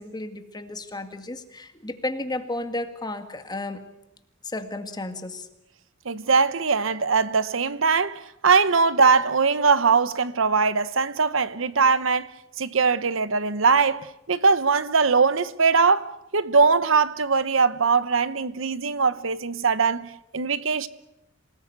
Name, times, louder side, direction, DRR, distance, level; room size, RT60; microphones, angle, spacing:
voice 1, 0.0-3.8 4.4-5.5, left 2 dB, 20° left, 2.1 m, -33 dB
voice 2, 6.0-20.9, right 5 dB, 75° right, 1.0 m, -21 dB
27.0 x 19.0 x 9.4 m
head